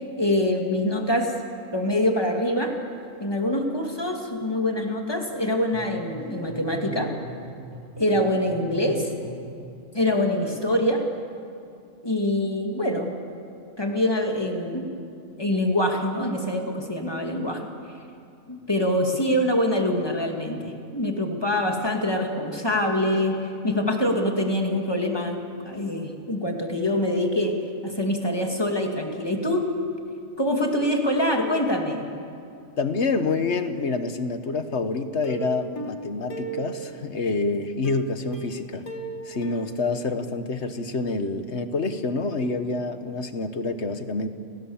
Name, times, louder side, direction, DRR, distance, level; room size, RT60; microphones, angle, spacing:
voice 1, 0.2-1.3 1.7-2.7 3.2-7.1 8.0-9.1 9.9-11.1 12.0-13.1 13.8-14.9 15.4-17.6 18.5-23.4 23.6-25.4 25.6-27.6 27.8-29.7 30.4-32.1, left 1 dB, 20° left, 2 dB, 2.5 m, -24 dB
sound 1, 5.7-9.6, left 1 dB, 30° right, 8.2 m, -39 dB
voice 2, 32.8-38.8 39.2-44.3, left 3 dB, 55° left, 9 dB, 1.5 m, -27 dB
Plucked string instrument, 35.2-37.2 37.8-40.6 41.0-41.1 41.4-41.5, right 2 dB, 85° left, 2.3 m, -37 dB
30.0 x 18.5 x 7.2 m, 2.5 s
omnidirectional pair, 1.4 m